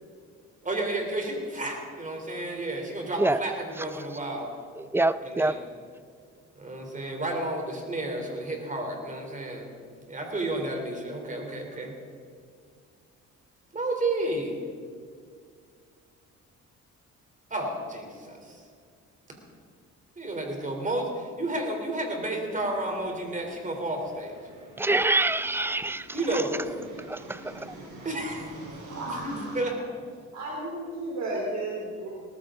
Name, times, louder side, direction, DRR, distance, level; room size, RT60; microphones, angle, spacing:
voice 1, 0.7-4.5 5.2-5.6 6.6-9.7 10.1-11.9 13.7-14.6 17.5-18.6 20.1-24.4 26.1-26.7 27.4-27.7 28.0-28.5 28.8-29.7, right 2 dB, 25° right, 3.5 m, -31 dB
voice 2, 4.8-5.6 24.8-26.1 27.1-27.7, right 2 dB, 10° right, 0.4 m, -25 dB
sound 1, 22.4-29.6, right 2 dB, 85° right, 4.9 m, -47 dB
voice 3, 28.9-29.5 30.3-32.1, right 2 dB, 60° right, 3.1 m, -33 dB
19.5 x 14.0 x 3.8 m
cardioid pair, 90°, 30 cm